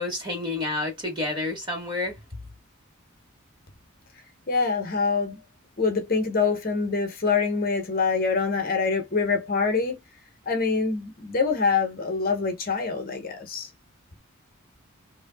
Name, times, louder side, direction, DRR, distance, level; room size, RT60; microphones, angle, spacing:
voice 1, 0.0-2.1, left 2 dB, 20° right, 1.5 m, -29 dB
voice 2, 4.5-5.4 5.8-10.0 10.5-13.7, left 4 dB, 45° left, 0.9 m, -25 dB
3.4 x 2.7 x 2.3 m
head